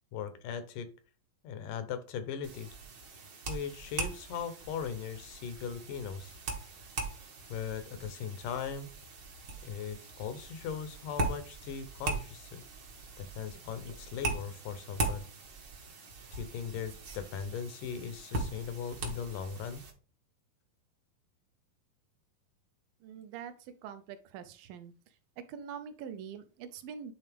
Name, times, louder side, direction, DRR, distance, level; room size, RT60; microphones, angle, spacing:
voice 1, 0.1-0.9 1.4-2.7 3.5-6.4 7.5-8.9 9.6-12.6 13.2-15.3 16.3-19.8, left 7 dB, 75° left, 10 dB, 2.0 m, -39 dB
sound 1, 2.4-19.9, right 3 dB, 65° right, 1.1 m, -40 dB
voice 2, 23.0-24.9 25.5-27.1, right 7 dB, 80° right, 9 dB, 2.2 m, -44 dB
10.5 x 3.7 x 3.4 m, 0.36 s
omnidirectional pair, 4.3 m